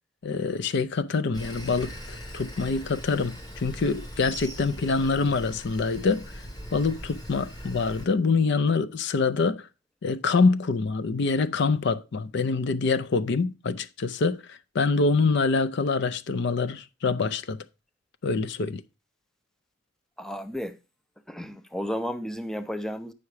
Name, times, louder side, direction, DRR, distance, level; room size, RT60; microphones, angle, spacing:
voice 1, 0.2-6.4 6.7-9.7 10.0-17.6 18.2-18.8, left 4 dB, 60° left, 0.5 m, -25 dB
Sawing, 1.3-8.1, equal, 20° left, 1.4 m, -40 dB
voice 2, 20.2-20.8 21.3-23.1, equal, 5° left, 0.5 m, -33 dB
8.4 x 5.8 x 4.7 m
head